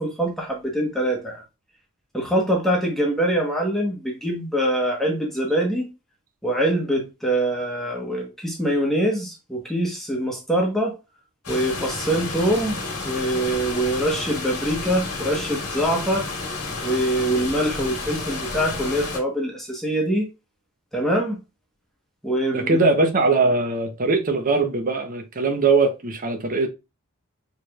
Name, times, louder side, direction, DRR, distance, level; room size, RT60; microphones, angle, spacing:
voice 1, 0.0-1.4 2.1-5.9 6.4-10.9 11.5-12.8 13.0-16.3 16.8-20.3 20.9-21.4 22.2-22.8, right 1 dB, ahead, 1.0 m, -24 dB
sound 1, 11.4-19.2, left 3 dB, 85° left, 1.6 m, -31 dB
voice 2, 22.5-26.7, right 3 dB, 40° right, 0.7 m, -21 dB
4.8 x 3.2 x 2.3 m
head